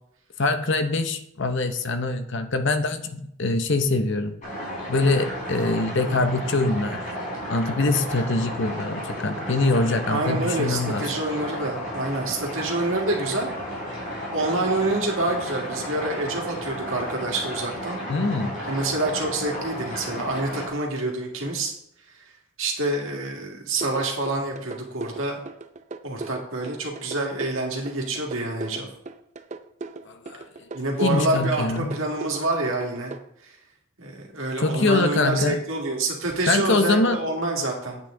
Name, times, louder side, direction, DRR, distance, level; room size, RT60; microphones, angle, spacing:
voice 1, 0.4-4.4 4.9-7.1 7.5-11.1 18.1-18.6 30.1-30.4 31.0-32.0 34.6-35.6 36.5-37.2, left 3 dB, 55° left, 8 dB, 0.8 m, -23 dB
sound 1, 4.4-20.7, equal, 35° left, 4.1 m, -33 dB
voice 2, 10.1-13.5 14.3-18.0 18.6-21.7 22.6-25.4 26.0-28.9 30.7-33.1 33.4-33.5 34.0-38.0, right 2 dB, 65° right, 0 dB, 2.1 m, -27 dB
sound 2, 23.8-33.2, right 3 dB, 30° right, 0.4 m, -38 dB
8.7 x 8.5 x 3.8 m, 0.75 s
head